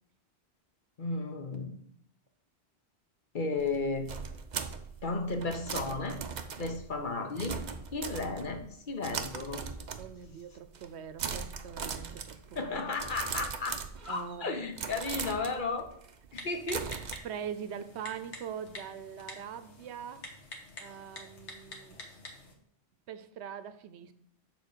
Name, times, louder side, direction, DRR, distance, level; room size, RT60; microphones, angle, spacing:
voice 1, 1.0-1.7 3.3-4.1 5.0-6.2 6.6-7.6 7.9-9.6 12.5-13.8 14.0-15.9 16.3-16.9, left 3 dB, 50° left, 5 dB, 1.1 m, -34 dB
sound 1, 3.6-8.7 9.0-10.3 10.6-10.9 11.2-14.4 14.7-17.2, right 6 dB, 50° right, 0.7 m, -39 dB
voice 2, 10.0-12.8 14.1-14.6 17.2-20.3 20.8-22.0 23.1-24.1, right 8 dB, 85° right, 12 dB, 0.9 m, -42 dB
Typing, 16.3-22.5, left 2 dB, 90° left, 1.6 m, -48 dB
6.9 x 4.3 x 6.7 m, 0.67 s
omnidirectional pair, 1.1 m